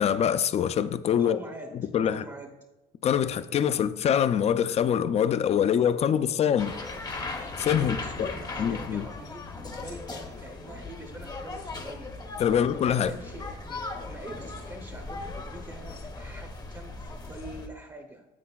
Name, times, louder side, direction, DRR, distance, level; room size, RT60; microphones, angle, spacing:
voice 1, 0.0-1.4 1.9-2.2 3.0-6.7 7.6-8.3 8.6-9.0 12.4-13.1, left 9 dB, 40° left, 0.4 m, -24 dB
voice 2, 1.2-2.5 7.8-18.3, right 2 dB, 20° right, 0.7 m, -44 dB
sound 1, 6.6-17.7, left 3 dB, 25° left, 0.8 m, -38 dB
sound 2, 9.8-10.0 11.3-11.7 12.9-13.2 14.3-14.6 15.7-16.0 17.2-17.8, left 5 dB, 75° left, 2.7 m, -55 dB
9.8 x 7.4 x 2.3 m
cardioid pair, 110°, 17 cm